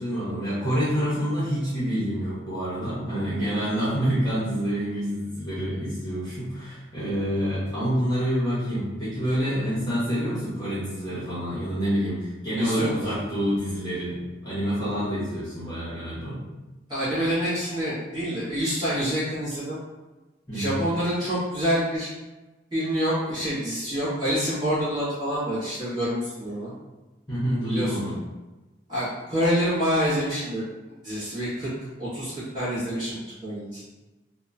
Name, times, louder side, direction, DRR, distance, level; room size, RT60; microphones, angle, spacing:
voice 1, 0.0-16.4 20.5-20.8 27.3-28.1, equal, 20° left, -11 dB, 0.8 m, -27 dB
voice 2, 12.6-13.2 16.9-19.8 20.5-22.1 22.7-26.7 27.7-28.1 28.9-30.6 31.0-31.7 32.0-33.8, equal, 20° right, -12 dB, 1.3 m, -27 dB
2.8 x 2.2 x 2.4 m, 1.1 s
head